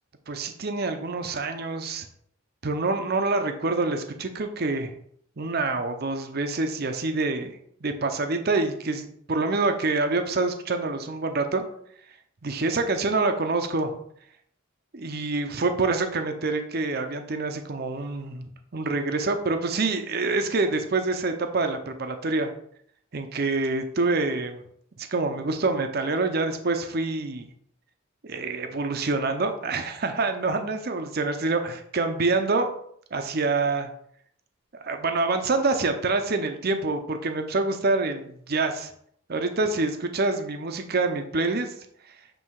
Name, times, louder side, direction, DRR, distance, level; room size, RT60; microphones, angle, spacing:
voice 1, 0.3-2.1 2.6-4.9 5.4-7.5 7.8-11.6 12.4-13.9 14.9-18.5 18.7-22.5 23.1-24.6 25.0-27.5 28.2-32.7 33.1-33.9 34.8-38.9 39.3-41.7, right 3 dB, 50° right, 7 dB, 0.7 m, -26 dB
7.7 x 3.4 x 4.7 m, 0.66 s
head